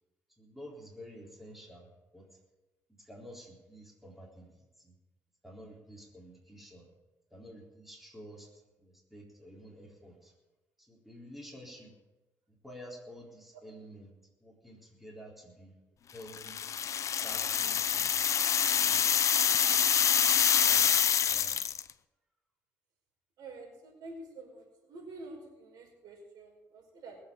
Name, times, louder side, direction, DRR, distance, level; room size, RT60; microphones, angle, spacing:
voice 1, 0.4-2.2 3.0-4.5 4.8-4.9 5.4-6.9 7.3-8.5 8.8-10.3 10.8-11.9 12.6-14.1 14.4-15.7 16.1-16.6 17.2-18.1 18.8-19.1 19.8-20.0 20.3-21.6, equal, 5° right, -1 dB, 3.9 m, -50 dB
sound 1, 16.3-21.9, left 8 dB, 50° left, 0.6 m, -26 dB
voice 2, 23.4-27.2, right 2 dB, 75° right, 1 dB, 5.1 m, -48 dB
20.0 x 8.1 x 7.0 m, 1.1 s
cardioid pair, 95°, 7 cm